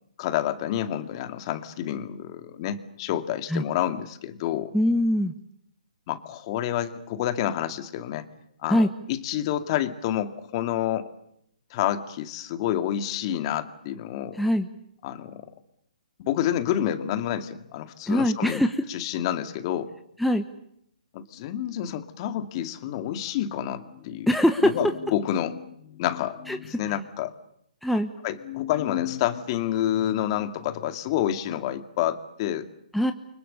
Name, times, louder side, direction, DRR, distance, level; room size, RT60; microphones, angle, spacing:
voice 1, 0.2-4.7 6.1-8.3 8.6-11.1 11.7-14.4 15.0-15.5 16.2-19.9 21.1-24.3 24.6-27.3 28.2-32.7, left 11 dB, 35° left, 9 dB, 2.2 m, -29 dB
voice 2, 4.7-5.3 8.7-8.9 14.3-14.7 18.1-18.7 20.2-20.4 24.3-24.7 26.5-26.6 27.8-28.1 32.9-33.1, left 1 dB, ahead, 6 dB, 1.1 m, -22 dB
30.0 x 24.5 x 6.8 m, 0.73 s
hypercardioid pair, 145°, 5 cm